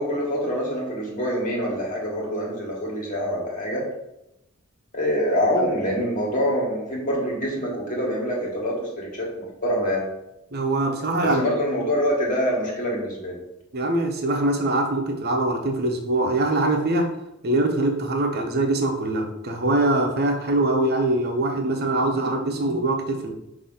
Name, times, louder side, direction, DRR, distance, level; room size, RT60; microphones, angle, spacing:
voice 1, 0.0-3.9 4.9-10.1 11.2-13.4, equal, 40° left, -3 dB, 1.8 m, -25 dB
voice 2, 10.5-11.4 13.7-17.1 17.4-23.3, right 2 dB, 50° right, 3 dB, 1.0 m, -23 dB
6.0 x 3.0 x 5.7 m, 0.86 s
head